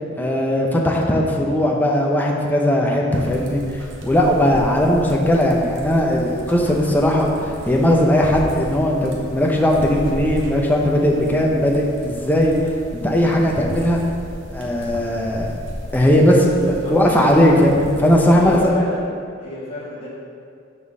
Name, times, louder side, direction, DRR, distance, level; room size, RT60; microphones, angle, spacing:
voice 1, 0.2-3.6 4.0-7.3 7.7-12.6 12.9-14.0 14.5-15.5 15.9-18.7, equal, 10° left, -1 dB, 0.6 m, -18 dB
sound 1, 3.1-18.7, equal, 70° right, 0.9 m, -35 dB
voice 2, 16.6-17.6 18.3-19.1 19.4-20.1, left 1 dB, 30° left, -7 dB, 1.6 m, -31 dB
5.4 x 4.1 x 6.0 m, 2.3 s
head